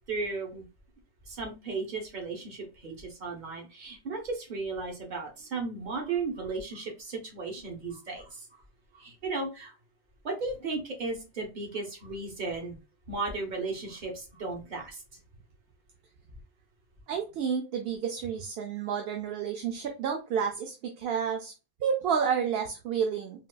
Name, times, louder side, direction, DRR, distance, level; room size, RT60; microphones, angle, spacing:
voice 1, 0.1-0.6 1.3-8.4 8.9-9.7 10.2-12.7 13.1-15.0, right 3 dB, 50° right, 1 dB, 1.0 m, -35 dB
voice 2, 17.1-21.5 21.8-23.5, right 7 dB, 75° right, 4 dB, 0.8 m, -30 dB
4.0 x 2.3 x 2.2 m, 0.30 s
omnidirectional pair, 1.0 m